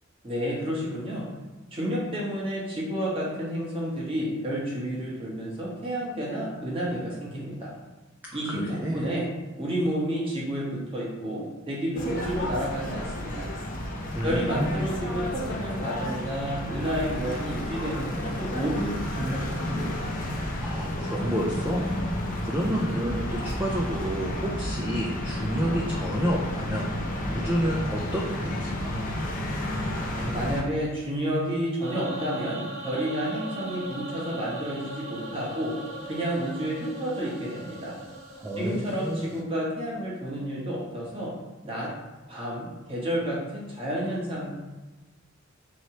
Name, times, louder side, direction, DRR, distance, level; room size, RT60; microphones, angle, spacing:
voice 1, 0.2-1.3 1.7-7.7 8.3-9.3 9.6-13.5 14.2-20.1 30.1-35.7 36.0-37.9 38.6-41.3 41.6-41.9 42.3-44.5, equal, 25° right, -6 dB, 1.2 m, -30 dB
voice 2, 8.2-9.1 14.1-14.8 20.6-21.9 22.4-26.9 27.3-29.0 38.4-39.3, equal, 10° right, -4 dB, 0.4 m, -30 dB
sound 1, 11.9-30.6, left 1 dB, 40° left, 0.6 m, -31 dB
sound 2, 31.8-39.4, right 1 dB, 70° right, 0.7 m, -39 dB
4.2 x 3.1 x 2.9 m, 1.2 s
head